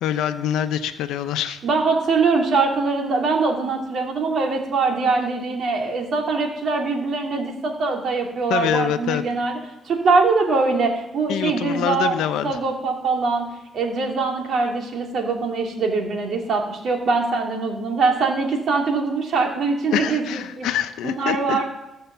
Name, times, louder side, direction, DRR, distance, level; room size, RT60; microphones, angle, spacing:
voice 1, 0.0-1.6 8.5-9.2 11.3-12.6 19.9-21.6, left 10 dB, 90° left, 10 dB, 0.8 m, -25 dB
voice 2, 1.6-9.6 9.8-12.1 12.4-20.7 21.0-21.6, right 4 dB, 60° right, 2 dB, 2.7 m, -22 dB
15.5 x 6.7 x 6.9 m, 0.90 s
cardioid pair, 90°, 0 cm